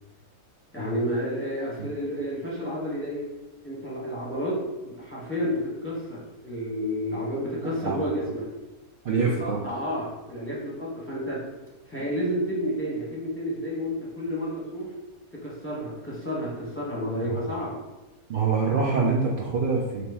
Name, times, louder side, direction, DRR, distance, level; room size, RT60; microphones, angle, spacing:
voice 1, 0.7-3.3 3.6-4.6 4.8-8.4 9.4-11.4 11.9-14.9 15.3-17.8, equal, 10° left, -6 dB, 0.7 m, -30 dB
voice 2, 9.0-9.6 17.1-17.4 18.3-20.0, right 4 dB, 85° right, -2 dB, 0.4 m, -25 dB
3.9 x 3.0 x 3.4 m, 1.1 s
omnidirectional pair, 1.5 m